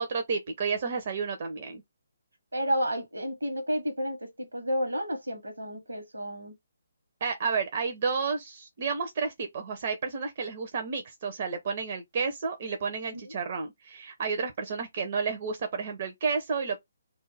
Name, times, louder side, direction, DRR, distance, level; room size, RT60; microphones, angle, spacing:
voice 1, 0.0-1.8 7.2-16.8, right 5 dB, 45° right, 0.5 m, -31 dB
voice 2, 2.5-6.6 13.1-13.3, equal, 80° right, 1.0 m, -31 dB
2.3 x 2.1 x 3.2 m
figure-of-eight pair, 140°, 0 cm